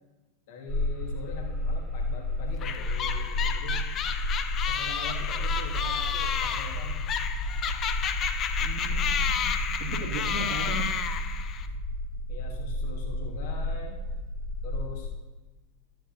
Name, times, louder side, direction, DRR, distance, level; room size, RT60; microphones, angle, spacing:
voice 1, 0.5-3.8 4.7-7.0 12.3-14.0 14.6-15.1, left 3 dB, 50° left, 1 dB, 1.3 m, -42 dB
sound 1, 0.7-15.1, left 1 dB, 5° left, 1.1 m, -31 dB
sound 2, 2.6-11.7, left 8 dB, 30° left, 0.6 m, -31 dB
voice 2, 8.6-9.5 9.8-11.0, right 5 dB, 45° right, -5 dB, 1.6 m, -36 dB
12.5 x 9.2 x 2.6 m, 1.2 s
figure-of-eight pair, 90°, 0 cm